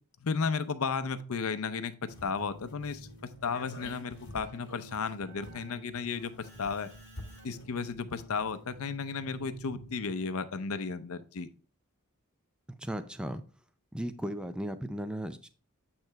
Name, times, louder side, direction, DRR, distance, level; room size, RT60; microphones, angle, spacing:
voice 1, 0.2-6.9 7.4-11.5, left 5 dB, 75° left, 11 dB, 0.6 m, -34 dB
Keyboard (musical), 2.0-10.4, equal, 55° right, 1.4 m, -52 dB
sound 1, 2.1-8.8 9.1-9.2, left 2 dB, 55° left, 1.9 m, -50 dB
voice 2, 12.8-13.4 13.9-15.5, equal, 5° right, 10 dB, 0.4 m, -36 dB
8.7 x 3.2 x 4.5 m, 0.37 s
head